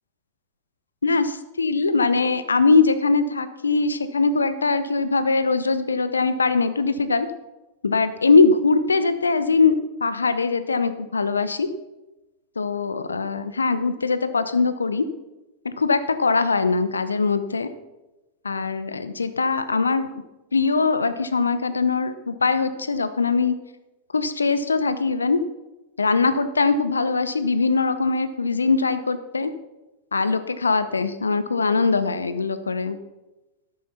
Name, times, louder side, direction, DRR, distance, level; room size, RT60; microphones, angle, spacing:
voice 1, 1.6-7.3 7.8-11.7 12.6-15.0 15.6-17.7 18.4-20.1 20.5-23.5 24.1-25.4 26.0-29.5 30.1-33.0, left 4 dB, 75° left, 12 dB, 0.9 m, -21 dB
13.0 x 12.5 x 4.3 m, 1.0 s
figure-of-eight pair, 90°, 0 cm